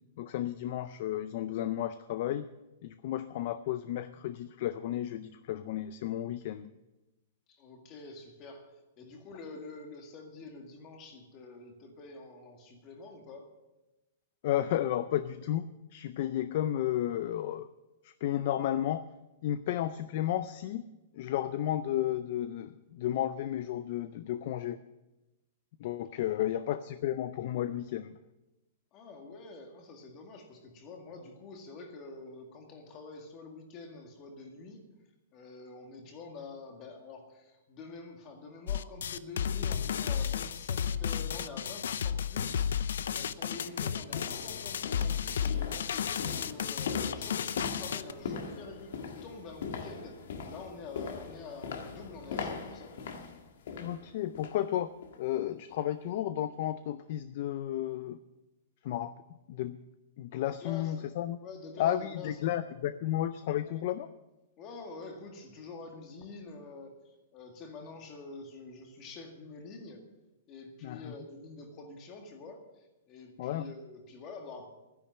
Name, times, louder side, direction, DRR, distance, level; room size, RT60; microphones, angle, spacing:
voice 1, 0.2-2.5 2.8-6.7 14.4-17.7 18.0-19.1 19.4-20.8 21.1-24.8 25.8-28.2 53.8-54.9 55.2-58.2 58.8-59.1 59.5-59.8 60.2-61.4 61.8-64.1 70.8-71.1 73.4-73.7, left 12 dB, 40° left, 13 dB, 0.4 m, -33 dB
voice 2, 7.5-13.5 28.9-34.8 35.3-42.9 43.1-53.0 60.4-61.1 61.4-62.6 63.7-63.8 64.6-70.0 70.5-74.7, left 3 dB, 25° left, 4 dB, 1.9 m, -47 dB
sound 1, 38.7-48.1, left 8 dB, 85° left, 0.6 m, -33 dB
sound 2, 42.7-42.8 43.4-54.7 55.0-55.3 55.7-55.8, left 5 dB, 65° left, 1.7 m, -41 dB
12.0 x 10.5 x 7.7 m, 1.0 s
supercardioid pair, 175°, 0 cm